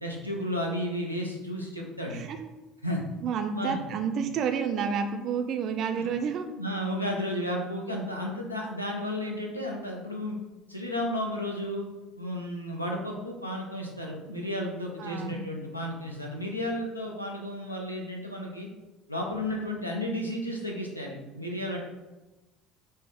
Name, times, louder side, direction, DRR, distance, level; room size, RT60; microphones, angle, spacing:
voice 1, 0.0-2.2 2.8-3.0 3.5-3.8 5.9-6.0 6.6-10.4 10.7-11.9 12.2-18.7 19.1-21.8, left 1 dB, 90° left, 0 dB, 0.5 m, -33 dB
voice 2, 2.1-2.5 3.2-6.5 15.0-15.4, right 6 dB, 45° right, 6 dB, 0.4 m, -30 dB
5.4 x 2.1 x 3.5 m, 1.1 s
figure-of-eight pair, 60°, 0 cm